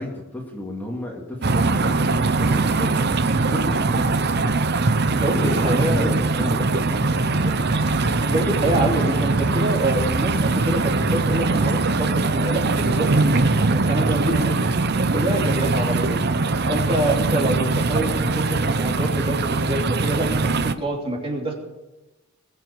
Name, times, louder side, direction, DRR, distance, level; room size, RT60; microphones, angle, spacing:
voice 1, 0.0-4.7 5.3-7.7 17.9-18.6, left 1 dB, 10° left, -1 dB, 2.1 m, -32 dB
sound 1, 1.4-20.7, right 3 dB, 50° right, 0.8 m, -21 dB
voice 2, 5.1-6.1 7.7-7.9 8.3-14.7 15.1-16.2 16.7-21.5, right 1 dB, 25° right, 0 dB, 3.0 m, -26 dB
sound 2, 7.0-12.2, right 1 dB, 80° right, 2.9 m, -33 dB
20.5 x 7.7 x 7.0 m, 1.0 s
head